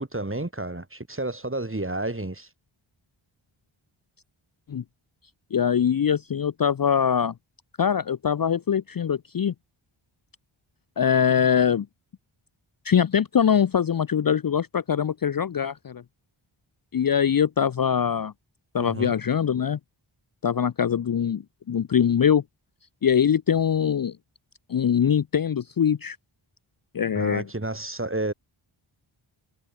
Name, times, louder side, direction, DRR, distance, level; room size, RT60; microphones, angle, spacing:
voice 1, 0.0-2.5 18.8-19.1 27.1-28.3, right 2 dB, 25° right, 6.6 m, -31 dB
voice 2, 5.5-7.3 7.8-9.5 11.0-11.9 12.8-16.0 16.9-18.3 18.7-19.8 20.4-21.4 21.7-22.4 23.0-24.1 24.7-26.2 26.9-27.4, left 8 dB, 45° left, 0.6 m, -22 dB
cardioid pair, 55°, 50 cm